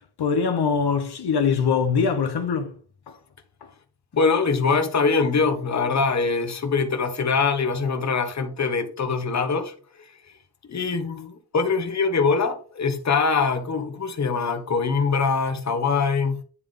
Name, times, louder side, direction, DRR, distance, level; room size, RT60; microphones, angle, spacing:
voice 1, 0.2-2.7, left 6 dB, 90° left, 0.9 m, -22 dB
voice 2, 4.1-9.7 10.7-16.4, left 4 dB, 45° left, 1.0 m, -23 dB
9.7 x 3.5 x 3.7 m
wide cardioid pair, 100°, 38 cm